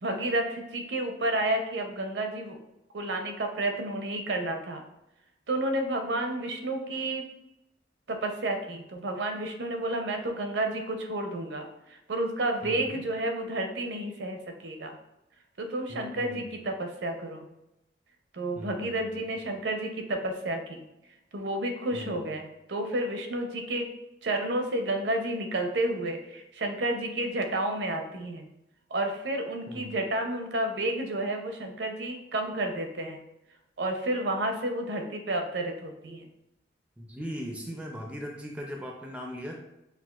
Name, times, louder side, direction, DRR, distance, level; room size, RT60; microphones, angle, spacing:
voice 1, 0.0-2.6 2.9-4.8 5.5-7.3 8.1-15.0 15.6-17.5 18.3-20.9 21.3-23.9 24.2-28.5 28.9-33.2 33.8-36.3, right 1 dB, 75° right, 4 dB, 0.6 m, -31 dB
voice 2, 12.6-13.0 15.9-16.5 18.6-19.4 21.9-22.3 29.7-29.9 37.0-39.6, equal, 5° right, 1 dB, 0.4 m, -39 dB
5.9 x 2.4 x 2.3 m, 0.87 s
head